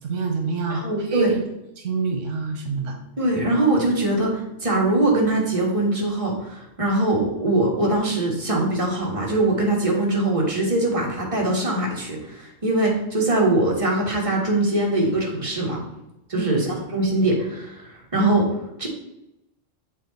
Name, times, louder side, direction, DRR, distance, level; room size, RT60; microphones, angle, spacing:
voice 1, 0.0-1.4 1.8-3.0 16.3-16.6, right 4 dB, 80° right, 3 dB, 1.2 m, -27 dB
voice 2, 0.7-1.3 3.2-15.8 16.3-18.9, right 2 dB, 25° right, -2 dB, 1.5 m, -22 dB
7.5 x 3.6 x 4.0 m, 0.87 s
omnidirectional pair, 1.3 m